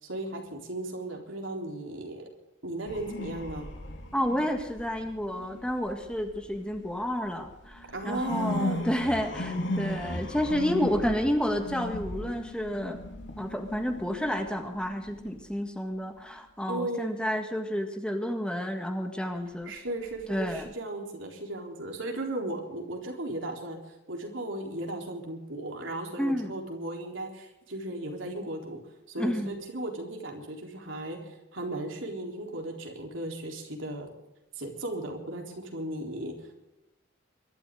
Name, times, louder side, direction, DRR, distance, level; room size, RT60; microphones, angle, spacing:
voice 1, 0.0-2.3 2.6-3.7 7.9-8.9 16.7-17.1 19.7-28.8 29.1-34.1 34.6-36.5, right 1 dB, 80° right, 1 dB, 3.9 m, -36 dB
sound 1, 2.9-7.0 7.4-15.3 20.1-20.6, left 1 dB, 65° left, 3.1 m, -37 dB
voice 2, 4.1-13.0 13.4-19.7 20.3-20.7 26.2-26.5 29.2-29.5, equal, 5° left, 4 dB, 1.7 m, -30 dB
23.0 x 12.5 x 3.8 m, 0.92 s
head